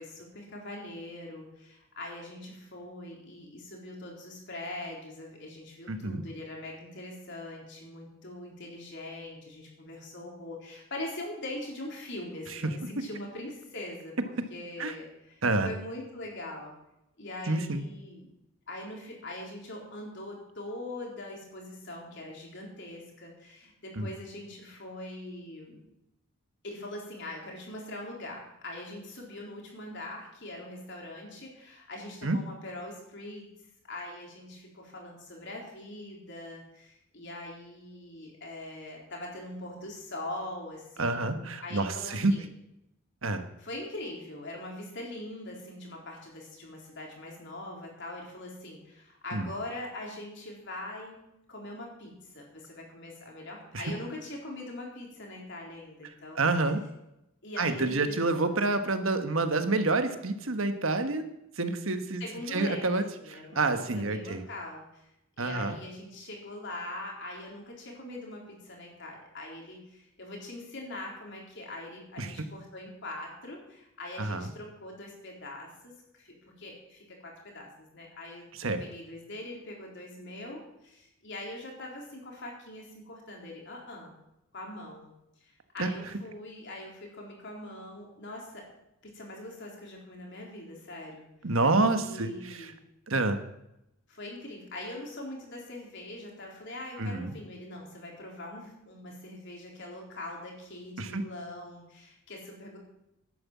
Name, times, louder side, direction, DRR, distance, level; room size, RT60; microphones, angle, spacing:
voice 1, 0.0-16.7 17.2-18.3 18.7-25.8 26.6-33.5 33.9-42.5 43.6-51.2 51.5-56.4 57.4-58.5 62.2-63.6 64.0-65.1 65.4-84.1 84.5-85.1 85.4-88.7 89.0-91.3 92.0-92.8 94.1-102.8, left 1 dB, 55° left, -1 dB, 4.0 m, -42 dB
voice 2, 5.9-6.2 14.8-14.9 15.4-15.7 17.5-17.8 24.0-24.1 32.2-32.4 41.0-42.3 43.2-43.4 49.3-49.5 53.7-53.8 56.3-56.8 57.6-61.2 61.6-62.2 62.5-63.0 63.5-64.4 65.4-65.8 72.2-72.4 74.2-74.5 78.6-78.8 85.8-85.9 91.4-92.7 93.1-93.4 97.0-97.3 101.0-101.2, right 3 dB, 70° right, 8 dB, 1.3 m, -28 dB
11.0 x 9.5 x 7.4 m, 0.85 s
head